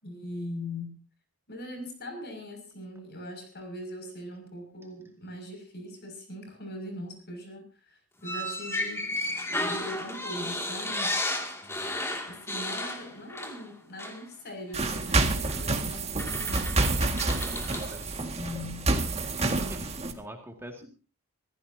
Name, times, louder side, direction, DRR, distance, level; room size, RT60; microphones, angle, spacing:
voice 1, 0.0-1.0 1.5-9.2 9.6-11.2 12.3-16.9 18.3-18.9 19.4-19.7, left 1 dB, 50° left, 6 dB, 6.4 m, -41 dB
sound 1, 8.2-13.7 14.0-14.2 15.4-15.6 16.2-17.9, left 1 dB, 10° left, 2.4 m, -33 dB
voice 2, 11.6-12.0 17.4-18.4 19.3-20.8, right 1 dB, 10° right, 3 dB, 2.2 m, -46 dB
sound 2, 14.7-20.1, right 2 dB, 30° right, 1.9 m, -28 dB
25.0 x 16.0 x 2.8 m, 0.32 s
head